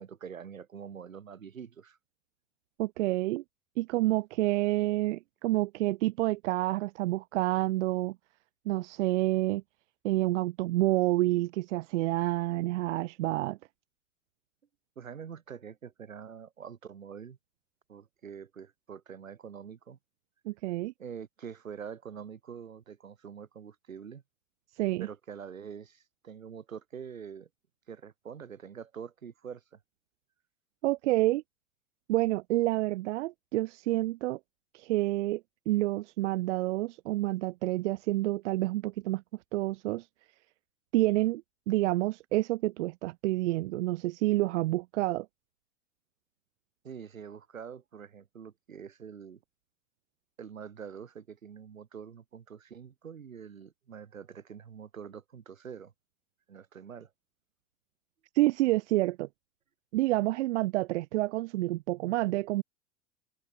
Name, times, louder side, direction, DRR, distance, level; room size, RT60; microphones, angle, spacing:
voice 1, 0.0-2.0 15.0-17.4 17.9-20.0 21.0-24.2 25.0-27.5 27.9-29.8 46.8-49.4 50.4-55.9 56.5-57.1, right 7 dB, 85° right, 2.8 m, -45 dB
voice 2, 2.8-3.4 3.8-8.2 8.7-9.6 10.0-13.6 20.5-20.9 24.8-25.1 30.8-31.4 32.1-34.4 34.7-35.4 35.7-39.2 39.5-40.1 40.9-45.3 58.4-59.3 59.9-62.6, right 18 dB, 65° right, 0.6 m, -28 dB
open air
hypercardioid pair, 95°, 39 cm